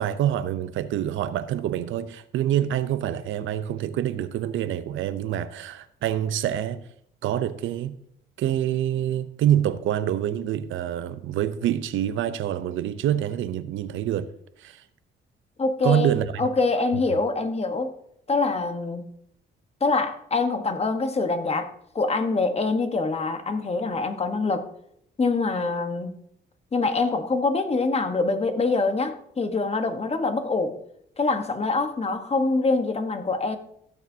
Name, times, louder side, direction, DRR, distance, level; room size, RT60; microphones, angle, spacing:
voice 1, 0.0-6.8 7.2-8.0 8.4-14.3 14.6-14.8 15.8-16.5, right 11 dB, 80° right, 0.6 m, -26 dB
voice 2, 15.6-17.9 18.3-19.1 19.8-24.7 25.2-26.1 26.7-30.8 31.2-33.6, left 3 dB, 30° left, 1.2 m, -25 dB
16.0 x 7.1 x 2.8 m
cardioid pair, 90°, 20 cm